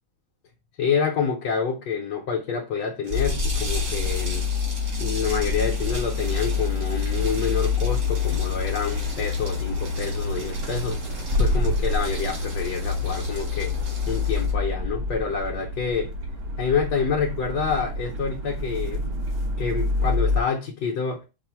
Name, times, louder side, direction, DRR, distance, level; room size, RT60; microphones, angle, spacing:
voice 1, 0.8-4.5 5.0-13.7 14.1-16.1 16.6-19.1 19.6-21.3, left 6 dB, 75° left, 1.3 m, -27 dB
sound 1, 3.1-20.4, left 4 dB, 50° right, 0.7 m, -27 dB
sound 2, 3.1-14.5, right 2 dB, 75° right, 2.3 m, -38 dB
5.6 x 2.0 x 4.4 m
omnidirectional pair, 1.9 m